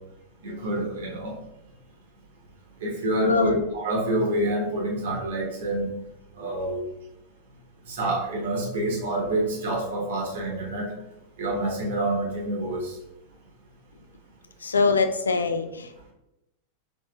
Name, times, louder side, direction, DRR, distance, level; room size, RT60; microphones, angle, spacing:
voice 1, 0.4-1.4 2.8-5.9 6.4-6.8 7.9-10.9 11.4-12.9, right 1 dB, 60° right, -2 dB, 1.1 m, -27 dB
voice 2, 3.2-3.6 14.6-16.1, left 4 dB, 75° left, 9 dB, 0.3 m, -23 dB
5.1 x 3.0 x 2.2 m, 0.92 s
figure-of-eight pair, 90°, 0 cm